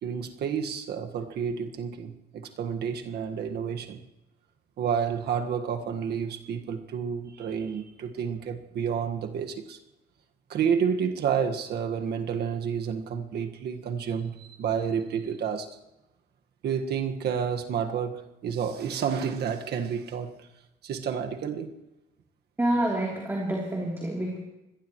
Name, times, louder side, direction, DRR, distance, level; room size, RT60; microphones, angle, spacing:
voice 1, 0.0-4.0 4.8-9.8 10.5-15.7 16.6-20.5 20.8-21.7, right 7 dB, 70° right, 1.6 m, -30 dB
voice 2, 22.6-24.4, right 1 dB, 15° right, 3.3 m, -27 dB
24.5 x 18.0 x 3.1 m
cardioid pair, 125°, 17 cm